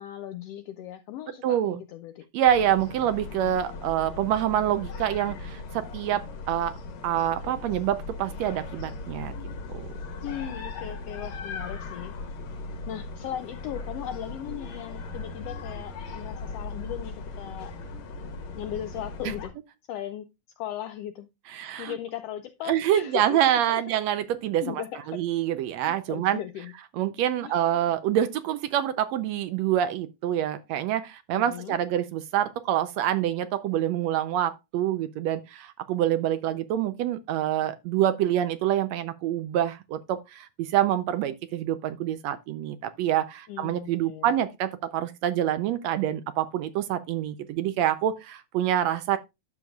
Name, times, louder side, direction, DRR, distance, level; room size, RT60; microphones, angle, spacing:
voice 1, 0.0-2.3 10.2-12.2 12.9-17.7 18.6-19.5 19.9-20.3 20.6-23.8 24.6-25.2 25.8-26.7 27.4-27.9 31.3-31.8 43.5-44.3, left 11 dB, 85° left, 1.4 m, -38 dB
voice 2, 1.4-1.8 2.3-6.8 7.0-9.3 9.7-9.8 21.5-22.0 22.7-24.8 25.1-26.4 27.0-49.2, right 11 dB, 75° right, 1.7 m, -26 dB
sound 1, 2.5-19.5, left 3 dB, 65° left, 2.6 m, -38 dB
11.0 x 6.9 x 2.3 m
omnidirectional pair, 3.4 m